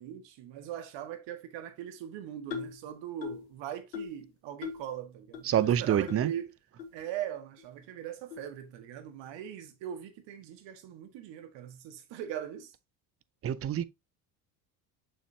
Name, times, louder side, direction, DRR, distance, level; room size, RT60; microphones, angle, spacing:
voice 1, 0.0-6.5 6.9-12.7, right 10 dB, 60° right, 1.6 m, -40 dB
sound 1, 2.5-2.8 3.2-3.5 3.9-4.2 4.6-4.9 5.3-5.4 6.1-6.2 6.8-6.9 7.6-7.7 8.3-8.5, left 7 dB, 85° left, 1.2 m, -39 dB
voice 2, 5.4-6.3 13.4-13.9, right 10 dB, 30° right, 0.6 m, -26 dB
6.7 x 5.8 x 2.8 m
hypercardioid pair, 60°, 50 cm